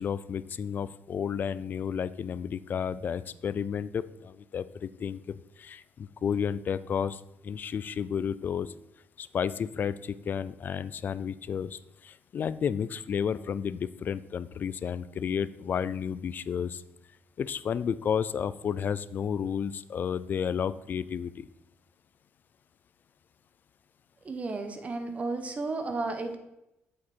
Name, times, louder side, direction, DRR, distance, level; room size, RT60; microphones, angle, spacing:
voice 1, 0.0-8.7 9.2-16.8 17.4-21.5, left 7 dB, 40° left, 17 dB, 0.4 m, -32 dB
voice 2, 24.2-26.4, right 3 dB, 30° right, 7 dB, 1.2 m, -33 dB
8.4 x 7.5 x 4.4 m, 0.89 s
cardioid pair, 125°, 5 cm